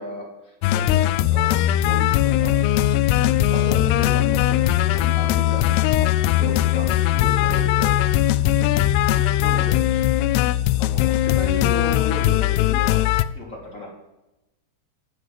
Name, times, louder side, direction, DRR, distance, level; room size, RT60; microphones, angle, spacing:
voice 1, 0.0-2.6 3.5-6.1 6.4-7.9 9.1-10.1 10.8-13.0 13.3-13.9, left 1 dB, 20° left, -1 dB, 3.5 m, -35 dB
sound 1, 0.6-13.2, left 13 dB, 80° left, 2.4 m, -19 dB
16.5 x 9.1 x 7.6 m, 0.96 s
omnidirectional pair, 5.1 m